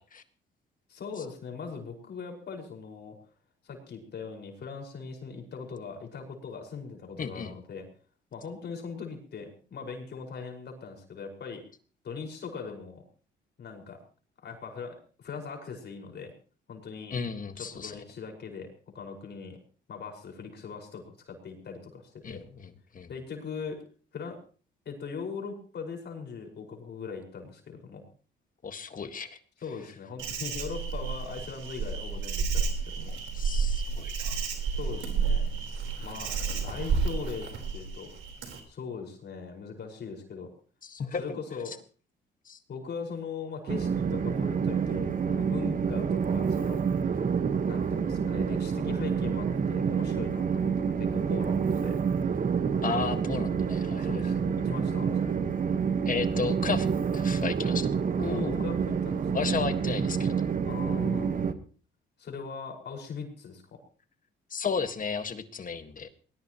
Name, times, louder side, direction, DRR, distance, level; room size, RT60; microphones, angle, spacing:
voice 1, 0.9-3.2 3.6-7.9 8.3-11.6 12.0-13.0 13.6-14.0 14.4-16.3 16.7-17.1 17.6-18.7 18.9-19.6 19.9-22.4 23.1-23.8 24.1-24.4 24.9-28.1 29.6-33.1 34.8-35.4 36.0-36.3 36.6-38.1 38.7-40.5 41.2-41.7 42.7-46.8 47.7-52.0 54.0-55.5 58.2-59.2 60.6-61.5 62.2-63.8, left 5 dB, 60° left, 2 dB, 5.4 m, -40 dB
voice 2, 7.2-7.5 17.1-17.9 22.2-23.1 28.6-29.4 33.4-34.4 40.8-41.4 41.7-41.8 42.5-42.6 52.8-54.3 56.1-56.9 57.1-57.9 58.2-58.6 59.3-60.3 64.5-66.1, left 5 dB, 45° left, 9 dB, 1.7 m, -34 dB
Insect, 30.2-38.6, right 5 dB, 75° right, 4.2 m, -31 dB
Train, 43.7-61.5, right 6 dB, 45° right, 1.4 m, -28 dB
21.0 x 20.0 x 3.1 m, 0.41 s
cardioid pair, 90°, 20 cm